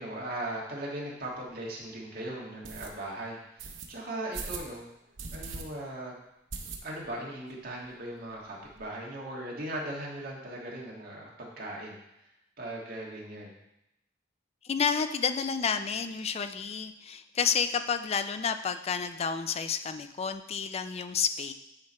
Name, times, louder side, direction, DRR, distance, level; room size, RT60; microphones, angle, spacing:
voice 1, 0.0-4.8 5.3-6.1 6.8-12.0 12.6-13.5, right 1 dB, 55° right, -3 dB, 1.6 m, -38 dB
sound 1, 1.2-1.3 1.8-1.9 2.6-2.9 3.6-3.9 4.3-4.7 5.2-5.6 5.9-6.0 6.5-7.2 7.5-7.6 7.8-7.9 8.2-8.8, right 4 dB, 85° right, 0.8 m, -40 dB
voice 2, 14.6-21.5, left 6 dB, 35° left, 10 dB, 0.4 m, -30 dB
9.6 x 3.3 x 4.2 m, 0.84 s
head